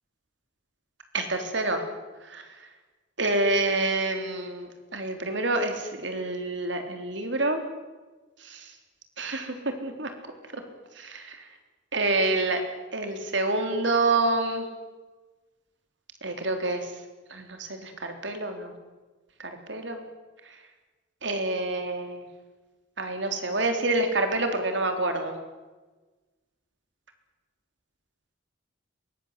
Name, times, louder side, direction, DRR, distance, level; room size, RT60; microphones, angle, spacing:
voice 1, 1.1-1.8 2.3-2.4 3.2-7.6 8.4-8.7 9.2-10.1 10.5-10.6 11.0-11.4 11.9-12.6 12.9-14.7 16.2-16.9 17.3-18.7 19.4-20.0 21.2-22.2 23.0-25.3, right 2 dB, 65° right, 6 dB, 3.6 m, -27 dB
23.5 x 21.0 x 8.3 m, 1.2 s
head